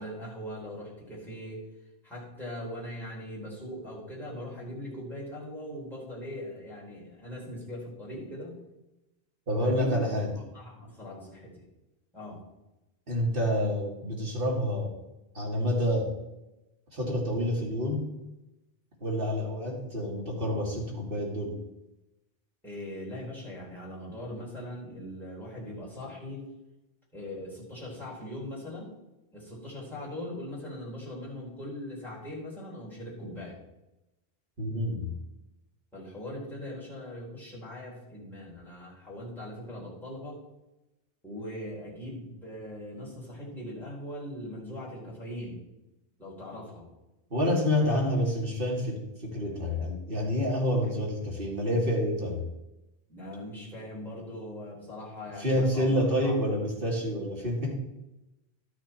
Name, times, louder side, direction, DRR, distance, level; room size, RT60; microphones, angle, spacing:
voice 1, 0.0-1.6 2.0-8.5 9.6-10.2 10.5-11.6 12.1-12.4 22.6-26.4 27.1-28.9 29.3-33.6 35.9-40.4 41.2-45.6 46.2-46.9 53.1-56.4, left 1 dB, ahead, -7 dB, 4.0 m, -40 dB
voice 2, 9.5-10.3 13.1-14.9 15.3-16.1 16.9-18.1 19.0-21.6 34.6-35.1 47.3-52.4 55.4-57.8, equal, 60° right, -2 dB, 2.6 m, -28 dB
12.0 x 6.4 x 4.4 m, 0.96 s
omnidirectional pair, 1.1 m